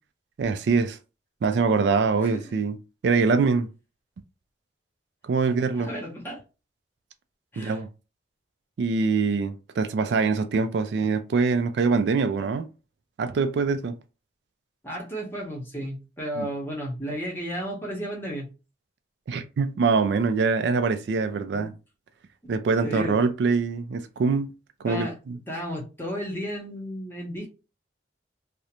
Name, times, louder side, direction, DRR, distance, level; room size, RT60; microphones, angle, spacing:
voice 1, 0.4-1.0 1.4-2.8 3.0-3.7 5.2-5.9 7.6-7.9 8.8-12.7 13.2-14.0 16.4-16.5 19.3-21.7 22.5-24.5 24.8-25.4, right 4 dB, 65° right, 0.3 m, -24 dB
voice 2, 5.7-6.4 7.5-7.8 14.8-18.5 21.5-21.7 22.8-23.2 24.8-25.2 25.5-27.5, equal, 10° left, 0.7 m, -33 dB
2.4 x 2.0 x 2.8 m
head